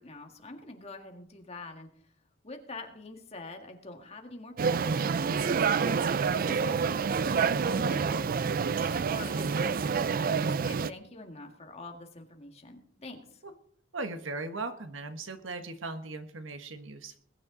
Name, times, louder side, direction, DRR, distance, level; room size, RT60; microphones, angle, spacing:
voice 1, 0.0-1.9 2.4-6.0 6.3-8.5 8.8-13.4, left 2 dB, 30° left, 4 dB, 1.9 m, -46 dB
sound 1, 4.6-10.9, right 5 dB, 45° right, 0.4 m, -28 dB
voice 2, 13.9-17.2, right 3 dB, 75° right, 8 dB, 1.4 m, -38 dB
21.0 x 9.7 x 3.9 m, 0.64 s
head